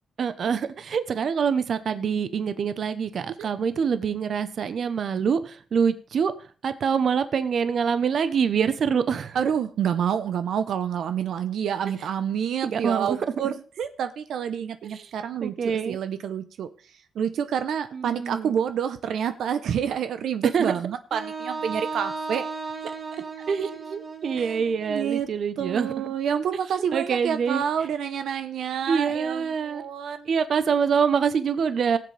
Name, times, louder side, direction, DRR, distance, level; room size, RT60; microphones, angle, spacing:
voice 1, 0.2-6.3 6.6-9.4 12.6-13.2 14.8-15.1 15.4-16.0 17.9-18.5 20.5-20.7 23.5-26.1 26.9-27.6 28.9-29.8 30.3-32.0, right 6 dB, 55° right, 0.9 m, -25 dB
voice 2, 9.3-16.7 17.1-22.5 22.8-22.9 24.4-24.5 24.9-25.3 25.6-30.3, right 8 dB, 80° right, 0.8 m, -28 dB
Wind instrument woodwind instrument, 21.1-25.1, right 4 dB, 40° right, 1.3 m, -35 dB
18.5 x 7.7 x 3.4 m
wide cardioid pair, 135°, 0 cm